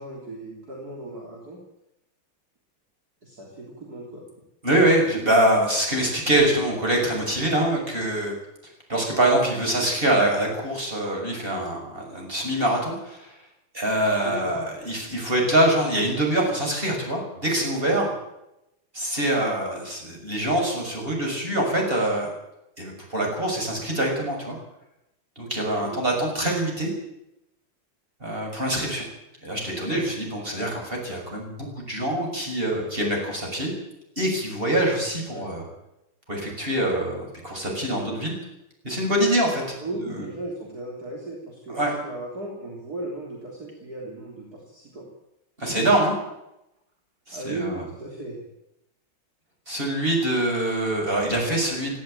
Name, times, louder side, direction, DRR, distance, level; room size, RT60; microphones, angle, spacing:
voice 1, 0.0-1.6 3.2-4.2 14.2-14.6 25.8-26.0 35.3-35.5 39.8-45.1 47.3-48.4, right 2 dB, 45° right, -2 dB, 4.1 m, -36 dB
voice 2, 4.6-8.3 8.9-13.3 13.7-18.1 18.9-22.3 22.8-24.6 25.4-26.9 28.2-29.0 29.4-33.7 34.2-35.6 36.3-38.4 38.8-39.6 40.1-40.2 41.7-41.9 45.6-46.2 47.3-47.8 49.7-52.0, right 1 dB, 25° right, 0 dB, 6.9 m, -24 dB
18.0 x 16.0 x 9.2 m, 0.87 s
omnidirectional pair, 2.2 m